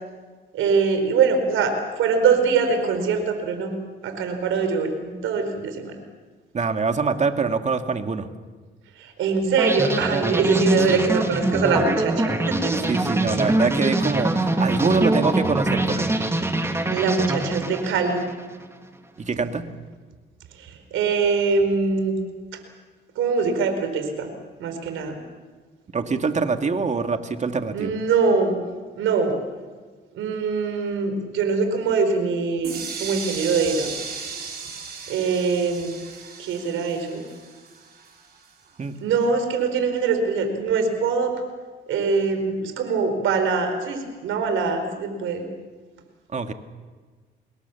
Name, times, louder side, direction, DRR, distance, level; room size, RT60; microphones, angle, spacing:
voice 1, 0.5-3.7 4.0-6.0 9.0-12.7 16.9-18.2 20.6-22.2 23.1-24.3 24.6-25.2 27.7-28.6 29.0-29.4 30.1-33.9 35.1-35.9 36.4-37.2 39.0-41.3 41.9-45.4, right 5 dB, 85° right, 6 dB, 4.7 m, -23 dB
voice 2, 6.5-8.2 10.9-11.0 12.9-16.1 19.3-19.6 25.9-27.9 38.8-38.9 46.3-46.5, right 4 dB, 35° right, 7 dB, 2.2 m, -24 dB
sound 1, 9.6-18.6, right 2 dB, 15° right, 2.4 m, -24 dB
sound 2, 32.6-38.5, right 5 dB, 50° right, 5.4 m, -36 dB
26.5 x 21.5 x 7.2 m, 1.4 s
cardioid pair, 90°, 20 cm